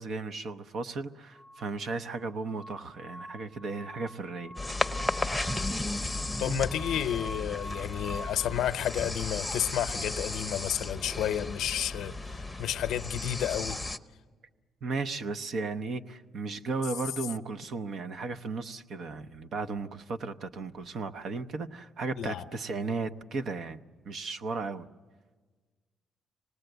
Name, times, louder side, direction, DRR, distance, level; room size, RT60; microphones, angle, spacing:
voice 1, 0.0-4.5 14.8-23.8 24.1-24.9, right 4 dB, 65° right, 0.8 m, -35 dB
Wineglass Ringing (Finger on rim), 1.3-8.5, equal, 35° right, 2.3 m, -45 dB
sound 1, 4.6-14.0, left 2 dB, 5° left, 0.8 m, -34 dB
voice 2, 6.4-12.1 12.6-13.8 22.2-22.4, left 11 dB, 80° left, 0.6 m, -31 dB
25.0 x 19.0 x 8.0 m
cardioid pair, 90°, 0 cm